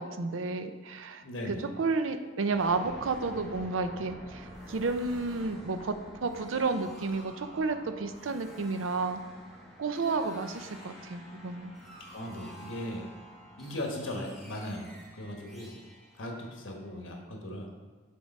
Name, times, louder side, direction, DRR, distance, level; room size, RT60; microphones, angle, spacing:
voice 1, 0.0-5.9 6.2-9.2 9.8-11.7, right 3 dB, 80° right, 9 dB, 0.5 m, -31 dB
voice 2, 1.2-1.7 12.1-13.1 13.6-14.9 15.1-15.7 16.2-17.7, left 1 dB, 75° left, 1 dB, 1.3 m, -38 dB
sound 1, 2.5-17.2, equal, ahead, 1.4 m, -49 dB
6.8 x 3.8 x 5.3 m, 1.5 s
head